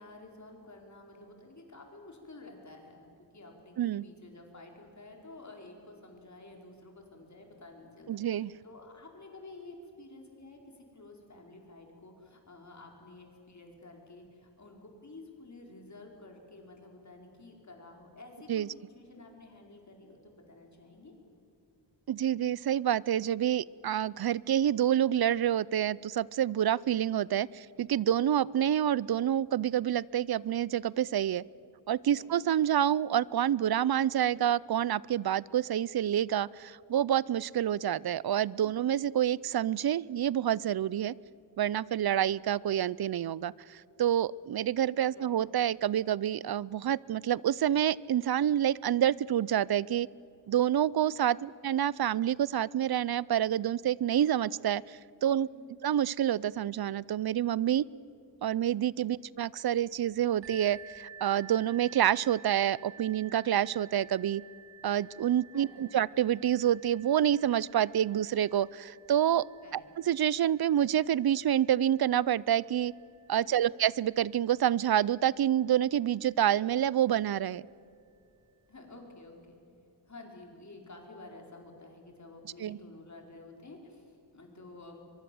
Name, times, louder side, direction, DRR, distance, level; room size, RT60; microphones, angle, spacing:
voice 1, 0.0-21.1 32.1-32.4 38.6-39.0 45.1-45.4 51.1-51.4 55.3-55.7 59.0-59.3 65.5-65.9 69.6-69.9 73.4-73.7 78.7-79.6 80.1-85.0, left 2 dB, 40° left, 1 dB, 4.8 m, -51 dB
voice 2, 8.1-8.5 18.5-18.7 22.1-31.4 31.9-41.1 41.6-50.1 50.5-55.5 55.8-57.8 58.4-64.4 64.8-69.5 70.1-72.9 73.3-77.6 82.6-82.8, right 10 dB, 60° right, 23 dB, 0.5 m, -28 dB
sound 1, 60.4-76.0 76.7-76.8 77.4-77.5, right 7 dB, 85° right, 2.7 m, -54 dB
24.0 x 23.0 x 7.8 m, 2.6 s
wide cardioid pair, 95°, 42 cm